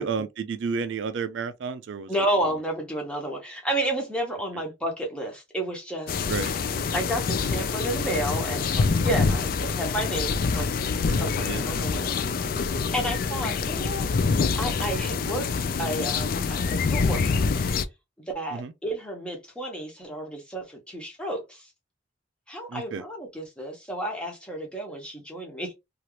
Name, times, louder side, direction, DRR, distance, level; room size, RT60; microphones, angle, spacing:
voice 1, 0.0-2.1 6.3-6.5 9.3-9.4 11.4-11.6 13.4-13.5 18.5-18.7 22.7-23.0, right 5 dB, 65° right, 0.3 m, -31 dB
voice 2, 2.1-6.1 6.9-10.8 11.1-12.2 12.9-14.1 14.6-15.4 15.8-17.4 18.3-21.7 22.5-25.7, right 1 dB, 5° left, 0.9 m, -31 dB
sound 1, 6.1-17.8, left 5 dB, 45° left, 0.3 m, -26 dB
2.8 x 2.4 x 3.0 m
head